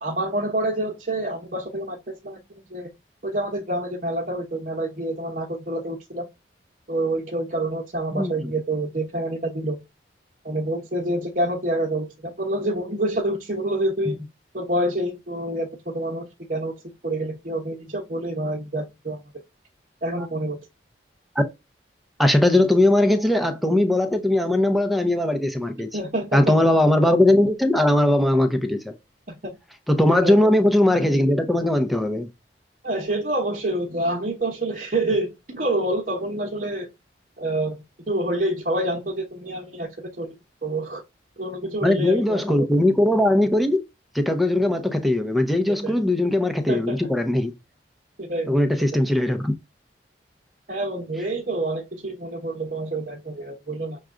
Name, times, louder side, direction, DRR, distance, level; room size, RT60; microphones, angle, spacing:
voice 1, 0.0-2.4 2.7-2.9 3.2-6.3 6.9-9.8 10.4-14.2 14.5-15.7 15.9-16.7 17.0-19.2 20.0-20.6 25.9-26.6 29.4-29.6 30.1-30.5 32.8-36.9 37.4-40.3 40.6-41.0 41.4-42.4 45.7-45.9 46.7-47.0 48.2-48.6 48.9-49.0 50.7-54.0, right 1 dB, 45° right, 1.0 m, -27 dB
voice 2, 8.1-8.5 14.1-14.2 22.2-25.9 26.3-28.9 29.9-32.3 41.8-43.8 44.1-47.5 48.5-49.5, left 1 dB, ahead, 0.6 m, -20 dB
6.2 x 2.3 x 3.7 m
head